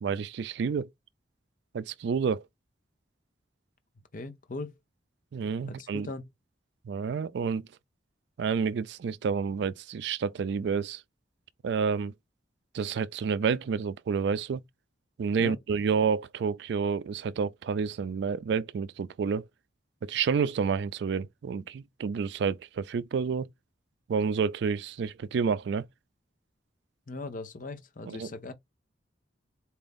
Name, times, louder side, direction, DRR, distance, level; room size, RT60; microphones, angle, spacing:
voice 1, 0.0-0.9 1.7-2.4 5.3-6.1 6.9-7.6 8.4-11.0 11.6-12.1 12.7-14.6 15.2-19.4 20.0-23.5 24.1-25.9 28.1-28.3, right 6 dB, 65° right, 0.3 m, -29 dB
voice 2, 4.1-4.7 5.7-6.3 15.4-15.6 27.1-28.5, left 2 dB, 45° left, 0.7 m, -39 dB
4.3 x 2.6 x 3.5 m
head